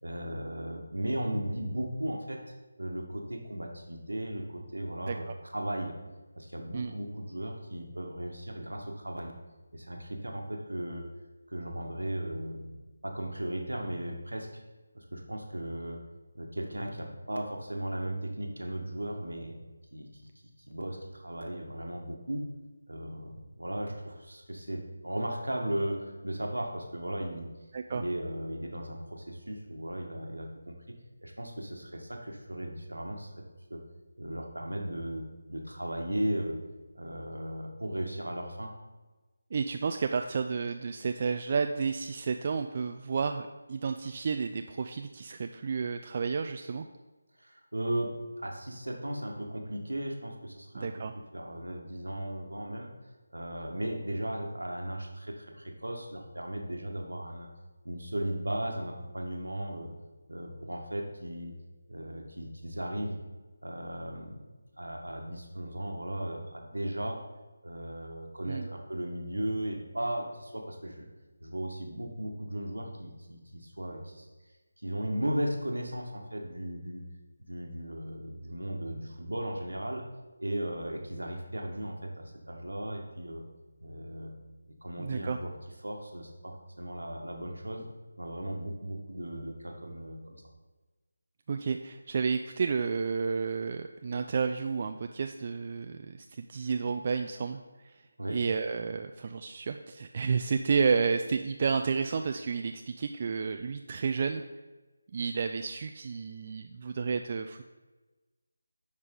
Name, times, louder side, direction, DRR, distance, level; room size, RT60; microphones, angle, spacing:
voice 1, 0.0-2.4 2.8-6.0 6.3-9.4 9.7-11.1 11.5-12.7 13.0-14.6 14.9-16.0 16.3-19.6 19.9-20.2 20.7-22.5 22.9-27.5 27.9-30.7 31.2-33.4 33.7-33.8 34.2-36.6 36.9-38.7 47.4-52.9 53.3-57.5 57.8-59.9 60.3-61.5 61.9-63.2 63.6-64.4 64.8-67.3 67.6-71.1 71.4-74.3 74.8-77.0 77.4-80.1 80.4-83.4 83.8-84.3 84.7-85.5 85.8-87.9 88.2-90.4 98.2-98.4, right 1 dB, 90° right, 3 dB, 1.4 m, -36 dB
voice 2, 27.7-28.0 39.5-46.9 50.7-51.1 68.4-68.7 85.0-85.4 91.5-98.0 98.3-104.4 105.1-107.6, right 5 dB, 35° right, 6 dB, 0.3 m, -31 dB
9.6 x 4.7 x 3.8 m, 1.2 s
figure-of-eight pair, 160°, 0 cm